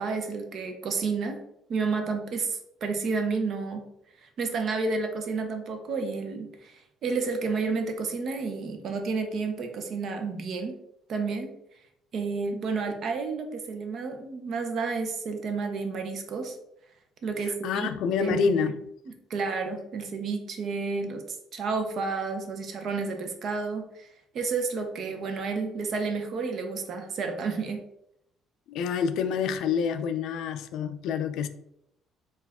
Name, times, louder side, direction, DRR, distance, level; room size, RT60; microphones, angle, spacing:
voice 1, 0.0-1.4 1.7-3.9 4.2-10.8 11.1-11.5 12.1-16.5 17.2-17.9 18.2-18.5 19.3-24.1 24.3-27.9, right 4 dB, 50° right, 0.7 m, -31 dB
voice 2, 17.4-18.8 28.7-31.5, left 6 dB, 70° left, 0.3 m, -27 dB
4.6 x 2.4 x 3.4 m
cardioid pair, 140°, 0 cm